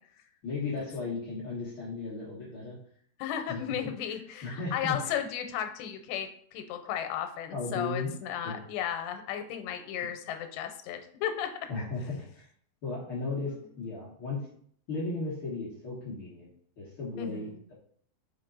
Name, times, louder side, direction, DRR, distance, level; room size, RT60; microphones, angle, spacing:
voice 1, 0.4-2.8 3.5-3.6 4.4-5.2 7.5-8.1 8.4-8.5 11.7-12.4 12.8-14.4 14.9-16.5 16.8-17.7, left 3 dB, 65° left, -7 dB, 1.3 m, -35 dB
voice 2, 3.2-11.5 17.2-17.6, left 9 dB, 85° left, 6 dB, 2.9 m, -34 dB
5.4 x 5.3 x 3.9 m, 0.62 s
omnidirectional pair, 4.8 m